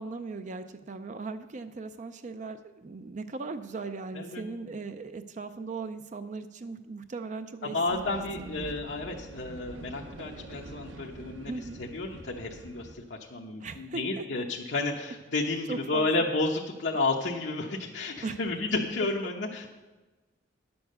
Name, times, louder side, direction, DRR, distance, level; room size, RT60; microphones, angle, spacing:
voice 1, 0.0-8.7 11.4-11.8 13.6-14.3 15.7-16.3 18.2-18.4, right 3 dB, 40° right, 9 dB, 0.4 m, -38 dB
voice 2, 7.7-11.5 11.8-19.7, left 3 dB, 65° left, -2 dB, 0.9 m, -31 dB
sound 1, 7.9-12.9, right 2 dB, 85° right, 0.8 m, -45 dB
10.0 x 7.0 x 6.6 m, 1.2 s
head